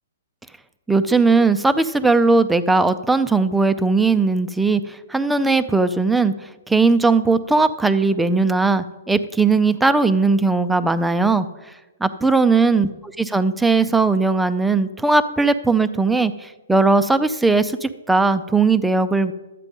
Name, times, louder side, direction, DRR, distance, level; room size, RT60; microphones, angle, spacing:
voice 1, 0.9-6.3 6.7-11.5 12.0-12.9 13.2-19.3, right 3 dB, 5° right, 11 dB, 0.4 m, -18 dB
12.0 x 8.3 x 5.3 m, 1.1 s
hypercardioid pair, 155°, 0 cm